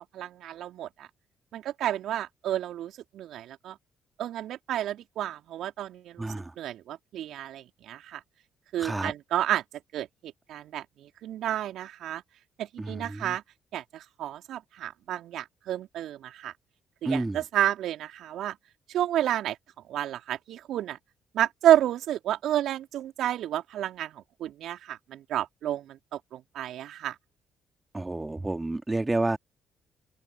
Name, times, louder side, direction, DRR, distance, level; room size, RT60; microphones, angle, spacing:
voice 1, 0.1-1.1 1.5-3.8 4.2-6.3 6.6-8.2 8.7-9.6 9.9-12.2 12.6-13.4 13.7-16.5 17.0-18.6 18.9-19.6 19.9-21.0 21.3-27.1, right 12 dB, 65° right, 3.3 m, -30 dB
voice 2, 6.2-6.5 8.8-9.1 12.8-13.3 17.0-17.4 27.9-29.4, right 2 dB, 20° right, 3.1 m, -30 dB
open air
hypercardioid pair, 45°, 0 cm